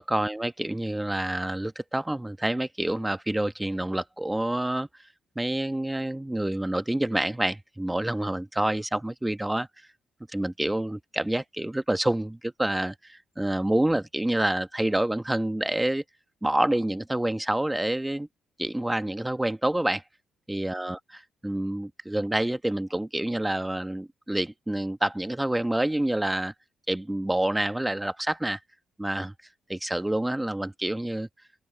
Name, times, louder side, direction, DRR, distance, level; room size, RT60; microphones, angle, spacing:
voice 1, 0.0-4.9 5.3-9.7 10.3-16.0 16.4-18.3 18.6-20.0 20.5-21.0 21.4-26.5 26.9-28.6 29.0-29.3 29.7-31.3, right 1 dB, 10° right, 1.1 m, -27 dB
open air
cardioid pair, 90°, 0 cm